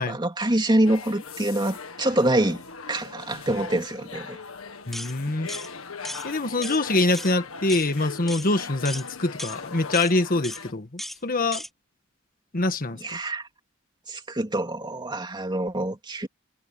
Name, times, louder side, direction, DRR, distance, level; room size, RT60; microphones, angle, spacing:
voice 1, 0.0-2.6 2.9-4.4 13.0-13.5 14.1-16.3, right 1 dB, 20° right, 2.7 m, -25 dB
sound 1, 0.8-10.7, left 4 dB, 80° left, 1.8 m, -39 dB
voice 2, 4.9-5.5 6.2-11.6 12.5-13.2, left 2 dB, 45° left, 1.5 m, -25 dB
sound 2, 4.9-5.1 5.5-5.7 6.0-6.3 6.6-6.8 7.1-7.3 7.7-7.9 8.3-8.5 8.9-9.1 9.4-9.6 9.9-10.1 10.4-10.6 11.0-11.2 11.5-11.7, equal, ahead, 3.3 m, -36 dB
head